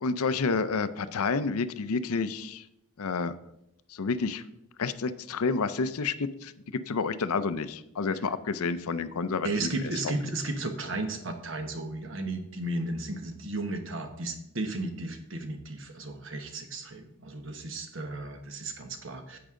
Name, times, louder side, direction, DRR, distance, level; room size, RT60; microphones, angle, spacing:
voice 1, 0.0-2.6 3.0-3.3 3.9-4.4 4.8-6.5 6.9-10.1, left 4 dB, 80° left, 13 dB, 0.5 m, -29 dB
voice 2, 9.4-19.4, right 2 dB, 60° right, 6 dB, 1.2 m, -34 dB
10.0 x 7.8 x 3.7 m, 0.81 s
head